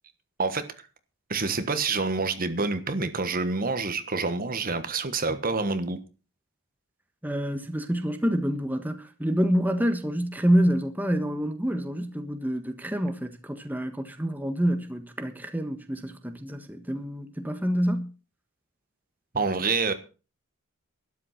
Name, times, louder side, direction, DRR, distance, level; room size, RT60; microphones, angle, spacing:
voice 1, 1.3-6.0 19.3-19.9, right 4 dB, 40° right, 1.4 m, -27 dB
voice 2, 7.2-18.1, equal, 10° right, 1.4 m, -27 dB
12.5 x 11.0 x 5.9 m
head